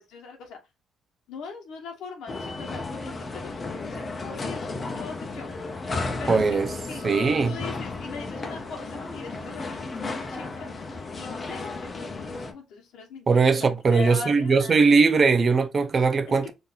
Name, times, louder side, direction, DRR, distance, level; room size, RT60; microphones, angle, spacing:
voice 1, 0.1-0.6 1.3-5.5 6.2-6.6 6.9-15.0 16.3-16.5, left 5 dB, 85° left, 1.2 m, -41 dB
sound 1, 2.3-12.5, left 3 dB, 35° left, 0.8 m, -34 dB
voice 2, 6.3-6.7 7.0-7.5 13.3-16.5, right 4 dB, 40° right, 0.6 m, -20 dB
3.8 x 2.7 x 2.5 m
cardioid pair, 90°, 0 cm